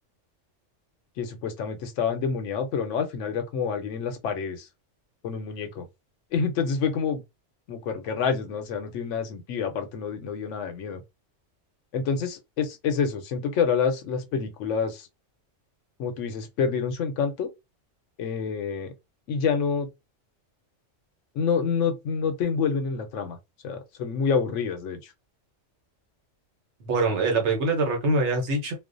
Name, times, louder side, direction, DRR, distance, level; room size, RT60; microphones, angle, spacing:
voice 1, 1.2-4.7 5.2-5.8 6.3-7.2 7.7-11.0 11.9-15.1 16.0-17.5 18.2-18.9 19.3-19.9 21.3-23.4 23.6-25.1, left 6 dB, 75° left, 0.9 m, -27 dB
voice 2, 26.8-28.7, right 3 dB, 65° right, 1.1 m, -24 dB
2.4 x 2.1 x 2.5 m
omnidirectional pair, 1.3 m